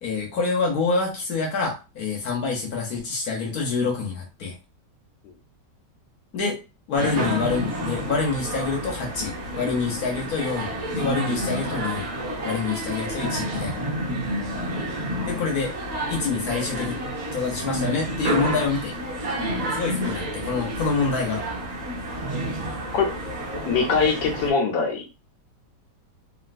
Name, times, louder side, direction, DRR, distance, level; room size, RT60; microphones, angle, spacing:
voice 1, 0.0-4.5 6.3-6.6 6.9-12.1 12.4-13.8 15.2-15.7 16.1-17.0 17.3-18.9 19.7-21.4, left 4 dB, 65° left, -1 dB, 1.2 m, -26 dB
sound 1, 7.0-24.5, right 1 dB, 35° right, 0.7 m, -30 dB
voice 2, 15.2-15.5 22.9-23.1 23.7-25.1, left 5 dB, 80° left, 3 dB, 1.4 m, -23 dB
3.1 x 2.6 x 2.5 m, 0.31 s
omnidirectional pair, 1.9 m